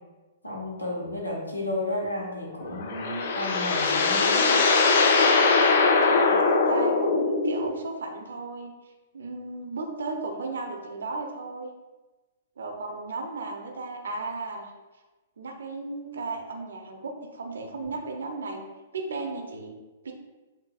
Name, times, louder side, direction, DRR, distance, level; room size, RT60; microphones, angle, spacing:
voice 1, 0.4-4.6, left 1 dB, 85° left, -3 dB, 1.2 m, -32 dB
sound 1, 2.6-7.8, left 4 dB, 55° left, 0.5 m, -21 dB
voice 2, 6.1-8.7 9.1-11.7 12.6-14.7 15.4-18.7 18.9-19.8 20.0-20.1, right 3 dB, 65° right, 3 dB, 0.6 m, -35 dB
7.5 x 2.6 x 2.4 m, 1.2 s
figure-of-eight pair, 110°, 0 cm